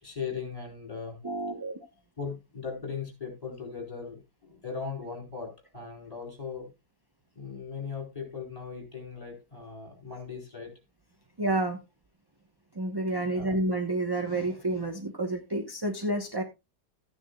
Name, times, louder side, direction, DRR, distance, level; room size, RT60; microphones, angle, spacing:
voice 1, 0.0-1.2 2.2-6.7 7.4-10.7 13.3-13.6, left 5 dB, 25° left, 2 dB, 4.1 m, -38 dB
voice 2, 1.2-1.8 11.4-11.8 12.7-16.4, right 2 dB, 20° right, 5 dB, 0.9 m, -29 dB
14.0 x 9.9 x 2.3 m, 0.24 s
omnidirectional pair, 1.6 m